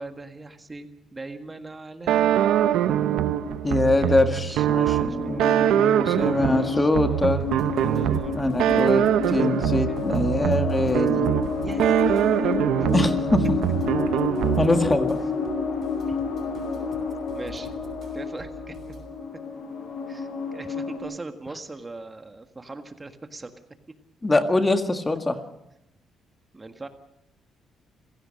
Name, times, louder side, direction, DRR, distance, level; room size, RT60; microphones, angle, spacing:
voice 1, 0.0-2.9 4.0-7.5 7.7-8.4 11.6-12.3 12.6-12.9 16.1-16.2 17.3-17.7 18.1-18.8 20.1-23.5 26.5-26.9, right 2 dB, 25° right, 7 dB, 1.7 m, -41 dB
sound 1, 2.1-15.0, right 11 dB, 85° right, 0.7 m, -23 dB
sound 2, 2.6-4.5 5.0-21.0, left 5 dB, 60° left, 6.3 m, -30 dB
voice 2, 3.6-7.4 8.3-11.3 12.9-13.5 14.6-15.2 24.2-25.4, left 2 dB, 20° left, 7 dB, 1.8 m, -23 dB
sound 3, 7.4-19.1, right 5 dB, 55° right, 6.6 m, -46 dB
27.5 x 16.5 x 6.5 m, 0.86 s
cardioid pair, 90°, 0 cm